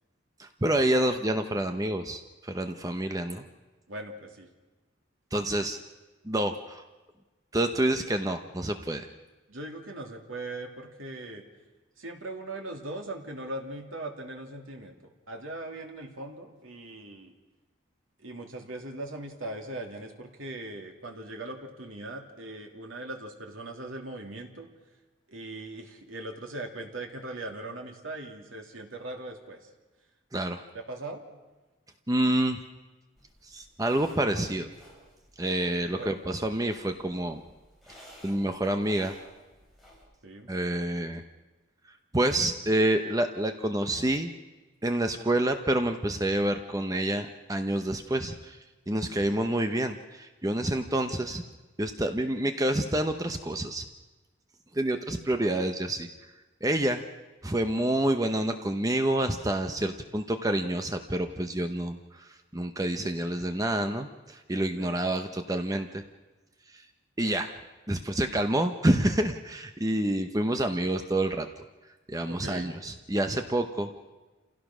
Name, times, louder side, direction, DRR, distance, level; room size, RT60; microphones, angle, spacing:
voice 1, 0.4-3.4 5.3-5.8 6.2-6.8 7.5-9.1 30.3-30.6 32.1-32.6 33.4-34.7 35.4-37.4 38.2-39.1 40.5-41.2 42.1-44.3 44.8-48.6 48.9-51.4 51.8-53.9 54.7-56.1 56.6-57.0 57.4-66.0 66.7-66.8 67.2-67.5 67.9-71.5 72.1-73.9, right 1 dB, 15° right, 6 dB, 0.8 m, -28 dB
voice 2, 3.9-4.5 9.5-11.4 12.0-15.0 15.3-17.3 18.2-24.7 25.3-29.7 30.7-31.2 36.0-36.5 40.2-40.5 64.8-65.0 72.2-72.7, right 2 dB, 90° right, 2 dB, 2.9 m, -40 dB
sound 1, 33.2-40.1, equal, ahead, 6.3 m, -54 dB
28.5 x 16.5 x 6.2 m, 1.2 s
head